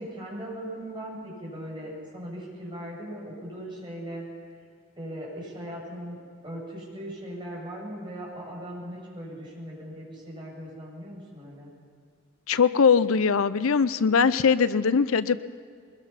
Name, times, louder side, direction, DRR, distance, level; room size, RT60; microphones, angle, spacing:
voice 1, 0.0-4.5 5.0-6.2 6.4-11.7, equal, 25° right, -4 dB, 7.4 m, -39 dB
voice 2, 12.5-15.4, left 5 dB, 75° left, 15 dB, 0.6 m, -21 dB
23.0 x 21.5 x 5.8 m, 2.2 s
head